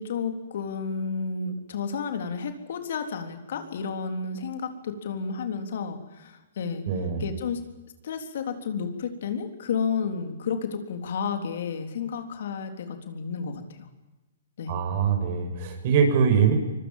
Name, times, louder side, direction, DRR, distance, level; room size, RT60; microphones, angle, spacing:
voice 1, 0.0-6.8 7.2-7.6 8.0-13.9 14.6-14.8, left 5 dB, 65° left, 6 dB, 3.7 m, -31 dB
voice 2, 6.9-7.3 14.7-16.5, right 6 dB, 50° right, 5 dB, 7.0 m, -23 dB
24.5 x 22.5 x 7.5 m, 1.1 s
hypercardioid pair, 145°, 0 cm